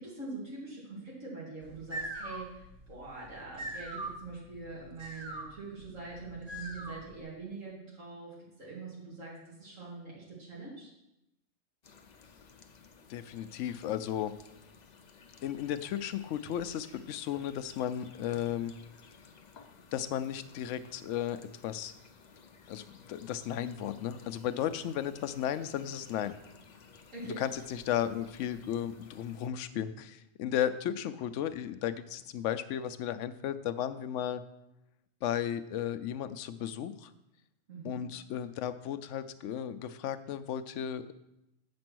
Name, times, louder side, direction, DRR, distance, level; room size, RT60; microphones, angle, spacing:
voice 1, 0.0-10.9 27.1-27.4 37.7-38.0, right 3 dB, 85° right, -6 dB, 2.7 m, -44 dB
sound 1, 1.6-7.2, right 1 dB, 35° right, 1.2 m, -42 dB
sound 2, 11.8-29.5, left 5 dB, 45° left, 0.6 m, -56 dB
voice 2, 13.1-14.3 15.4-18.7 19.9-21.4 21.6-21.9 22.7-26.3 27.2-34.4 35.2-37.1 37.8-41.1, left 10 dB, 75° left, 12 dB, 0.9 m, -34 dB
7.7 x 5.2 x 6.1 m, 0.87 s
omnidirectional pair, 1.3 m